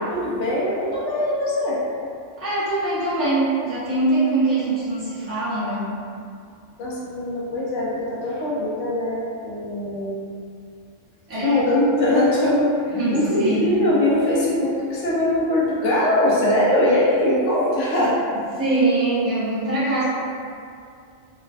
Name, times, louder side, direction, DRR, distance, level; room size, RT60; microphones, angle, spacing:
voice 1, 0.1-1.8 6.8-10.1 11.3-18.2, left 1 dB, 75° left, -6 dB, 1.0 m, -21 dB
voice 2, 2.4-5.8 11.3-11.6 12.9-13.7 18.6-20.0, right 2 dB, 15° right, -13 dB, 0.6 m, -22 dB
3.1 x 2.2 x 2.4 m, 2.4 s
omnidirectional pair, 1.2 m